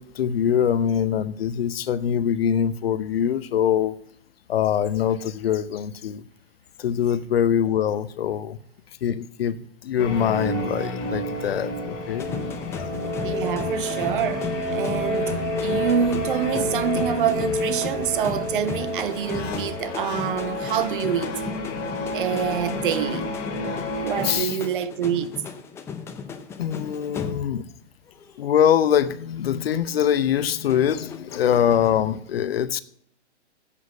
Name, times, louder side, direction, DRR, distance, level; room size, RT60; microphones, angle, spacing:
voice 1, 0.0-4.0 4.5-6.2 6.8-8.6 9.0-12.3 12.8-12.9 24.2-24.6 26.6-27.6 28.4-32.8, left 9 dB, 55° left, 0.8 m, -23 dB
sound 1, 10.0-24.3, equal, 30° left, 2.5 m, -29 dB
sound 2, 12.2-27.8 28.1-28.4 30.6-31.9, left 6 dB, 5° left, 0.5 m, -36 dB
voice 2, 13.2-21.3 22.1-23.3 24.0-25.3, right 8 dB, 45° right, 0.8 m, -26 dB
8.4 x 7.1 x 8.3 m
hypercardioid pair, 130°, 35 cm